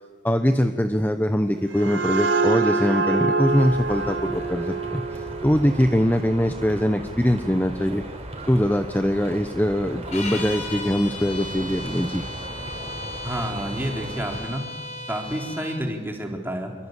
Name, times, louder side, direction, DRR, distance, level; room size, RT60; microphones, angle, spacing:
voice 1, 0.2-8.0 8.5-12.2, equal, 10° left, 7 dB, 1.0 m, -22 dB
sound 1, 1.5-6.9, right 4 dB, 80° right, 1.6 m, -26 dB
sound 2, 3.5-14.4, right 1 dB, 35° right, 4.7 m, -37 dB
sound 3, 10.1-15.8, left 2 dB, 40° left, 4.2 m, -35 dB
voice 2, 13.2-14.6 15.1-16.7, equal, 10° right, 1 dB, 3.9 m, -29 dB
27.0 x 23.5 x 8.3 m, 1.5 s
head